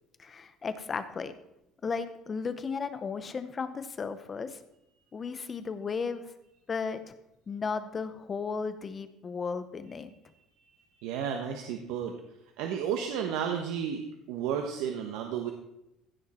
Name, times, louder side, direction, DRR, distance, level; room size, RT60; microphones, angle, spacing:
voice 1, 0.2-1.3 1.8-4.6 5.1-6.3 6.7-7.1 7.5-10.1, left 5 dB, 20° left, 11 dB, 0.7 m, -35 dB
voice 2, 11.0-12.1 12.6-14.0 14.3-15.5, right 8 dB, 80° right, 4 dB, 1.1 m, -32 dB
15.5 x 6.5 x 4.3 m, 0.86 s
cardioid pair, 170°, 0 cm